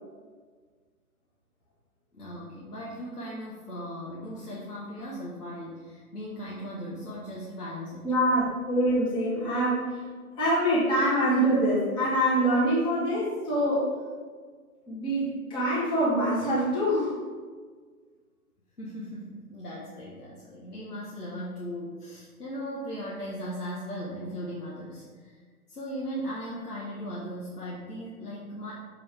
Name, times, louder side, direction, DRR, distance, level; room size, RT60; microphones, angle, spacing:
voice 1, 2.1-8.1 18.8-25.4 25.7-28.7, equal, 90° left, -6 dB, 1.4 m, -38 dB
voice 2, 8.0-10.0 10.4-13.9 14.9-17.1, right 1 dB, 10° left, -9 dB, 1.4 m, -25 dB
6.5 x 5.0 x 3.4 m, 1.5 s
figure-of-eight pair, 125°, 45 cm